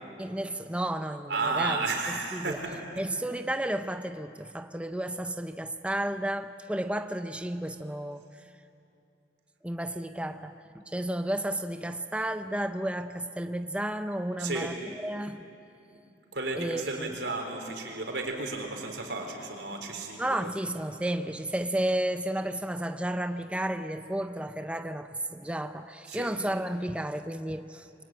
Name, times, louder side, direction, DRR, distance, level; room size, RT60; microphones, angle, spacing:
voice 1, 0.2-2.6 3.0-8.2 9.6-15.4 16.5-17.1 19.9-27.9, right 1 dB, 5° right, 8 dB, 0.6 m, -32 dB
voice 2, 1.3-2.8 14.4-14.7 16.3-20.5 26.1-26.3, right 3 dB, 70° right, 3 dB, 4.1 m, -33 dB
26.5 x 23.5 x 9.0 m, 2.7 s
head